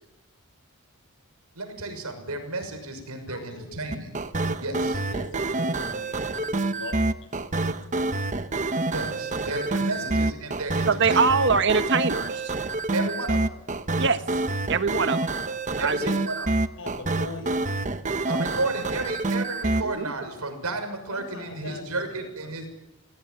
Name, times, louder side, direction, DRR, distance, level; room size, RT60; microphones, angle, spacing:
voice 1, 1.5-4.1 4.6-5.0 8.9-11.2 12.9-13.5 15.8-16.5 18.3-22.7, right 2 dB, 80° right, 7 dB, 6.4 m, -32 dB
voice 2, 3.3-3.9 4.5-4.6 4.8-7.0 9.2-10.3 13.0-13.1 14.9-15.5 16.0-16.2 16.8-17.5 21.1-22.7, left 2 dB, 60° left, 6 dB, 6.9 m, -42 dB
sound 1, 3.9-19.8, right 2 dB, 35° right, 1.1 m, -27 dB
voice 3, 10.9-12.5 14.0-14.2 14.7-15.2 15.8-16.0 19.8-20.0, right 5 dB, 55° right, 10 dB, 1.4 m, -23 dB
27.5 x 18.0 x 9.6 m, 0.93 s
head